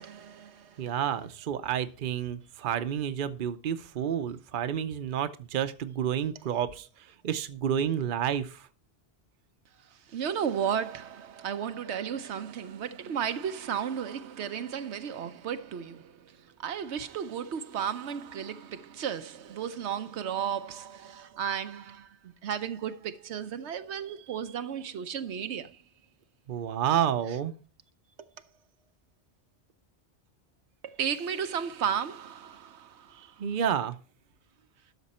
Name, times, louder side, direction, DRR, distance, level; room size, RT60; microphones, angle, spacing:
voice 1, 0.0-0.9 9.9-25.8 28.2-28.3 30.8-33.4, right 8 dB, 80° right, 1.0 m, -34 dB
voice 2, 0.8-8.7 26.5-27.5 33.4-33.9, right 9 dB, 50° right, 0.8 m, -30 dB
12.5 x 6.2 x 4.2 m
omnidirectional pair, 1.1 m